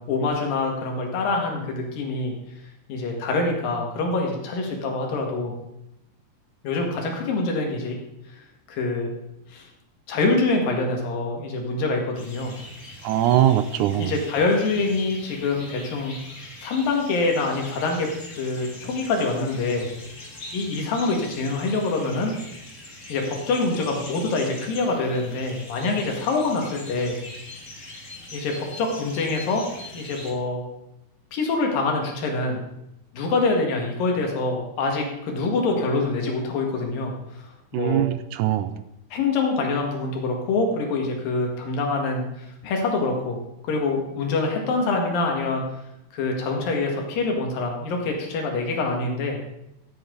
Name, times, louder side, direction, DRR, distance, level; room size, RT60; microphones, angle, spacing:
voice 1, 0.0-2.3 2.9-5.5 6.6-8.0 8.7-9.1 9.5-9.7 10.1-12.5 14.0-16.2 16.6-18.1 18.4-19.9 20.5-22.4 23.1-27.2 28.3-29.7 29.9-30.6 31.3-32.6 33.1-38.1 39.1-43.4 43.6-45.6 46.1-49.4, left 3 dB, 85° left, 1 dB, 3.6 m, -25 dB
sound 1, 12.1-30.3, left 2 dB, 30° left, 1.5 m, -42 dB
voice 2, 13.0-14.1 37.7-38.7, right 12 dB, 80° right, 12 dB, 1.9 m, -21 dB
16.0 x 8.0 x 3.9 m, 0.86 s
omnidirectional pair, 3.9 m